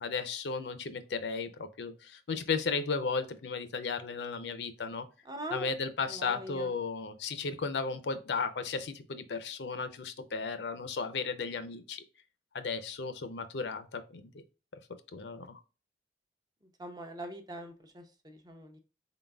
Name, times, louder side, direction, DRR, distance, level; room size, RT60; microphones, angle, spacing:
voice 1, 0.0-5.1 5.5-12.0 12.5-14.3 15.1-15.6, left 4 dB, 80° left, 0.6 m, -35 dB
voice 2, 5.2-5.7 6.1-6.7 16.8-18.8, right 1 dB, 25° right, 0.6 m, -42 dB
3.9 x 3.9 x 2.3 m
head